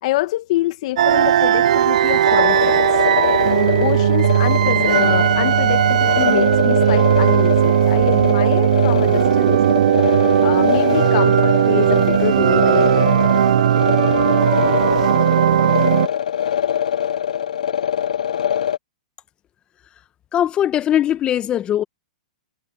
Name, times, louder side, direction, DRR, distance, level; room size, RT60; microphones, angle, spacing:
voice 1, 0.0-3.0 3.6-9.6 10.4-13.3, left 17 dB, 60° left, 1.5 m, -26 dB
sound 1, 1.0-16.1, right 10 dB, 75° right, 0.4 m, -17 dB
sound 2, 2.2-18.8, left 9 dB, 85° left, 0.7 m, -23 dB
voice 2, 20.3-21.8, left 11 dB, 25° left, 1.1 m, -20 dB
hypercardioid pair, 125°, 4 cm